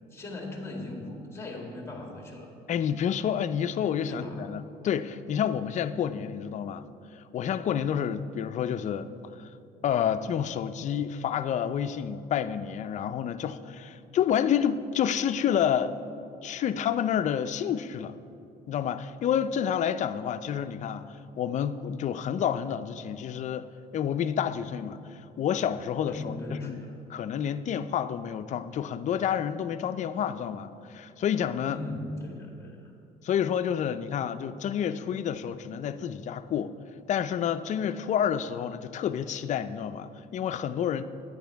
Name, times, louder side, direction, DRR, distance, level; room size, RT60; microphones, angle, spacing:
voice 1, 0.1-2.5 4.1-4.6 26.1-27.0 31.7-32.9, left 2 dB, 15° left, 1 dB, 1.9 m, -38 dB
voice 2, 2.7-6.9 7.2-9.5 9.8-15.9 16.4-18.2 18.7-23.7 23.9-26.8 27.1-31.8 33.2-36.7 37.1-41.0, left 9 dB, 45° left, 11 dB, 0.4 m, -29 dB
9.4 x 9.1 x 4.6 m, 2.7 s
cardioid pair, 110°, 17 cm